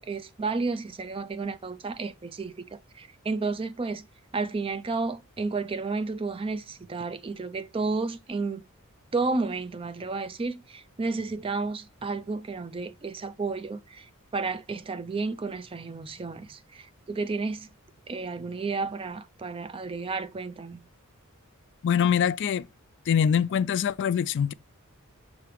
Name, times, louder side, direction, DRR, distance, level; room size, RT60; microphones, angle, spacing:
voice 1, 0.0-4.0 4.3-8.6 9.1-17.7 18.1-20.8, right 3 dB, 25° right, 0.4 m, -32 dB
voice 2, 21.8-22.7 23.1-24.5, left 8 dB, 55° left, 0.3 m, -24 dB
6.7 x 3.2 x 4.8 m
head